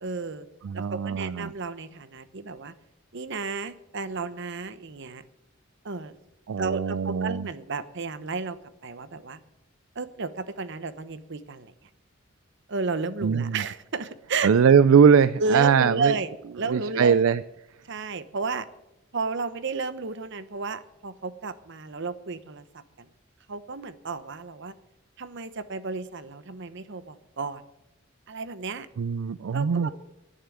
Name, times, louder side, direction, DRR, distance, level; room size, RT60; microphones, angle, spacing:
voice 1, 0.0-0.5 0.7-2.7 3.1-5.2 5.8-6.1 6.6-8.6 8.8-9.4 9.9-11.7 12.7-14.5 15.4-16.3 16.6-17.3 17.9-18.7 19.1-22.6 23.0-23.1 23.5-24.7 25.2-27.6 28.3-28.9 29.5-29.9, right 4 dB, 60° right, 13 dB, 1.0 m, -32 dB
voice 2, 0.6-1.5 6.5-7.5 13.2-13.6 14.4-16.2 16.7-17.4 29.0-29.9, right 6 dB, 75° right, 16 dB, 0.4 m, -21 dB
11.0 x 10.5 x 9.2 m, 0.89 s
head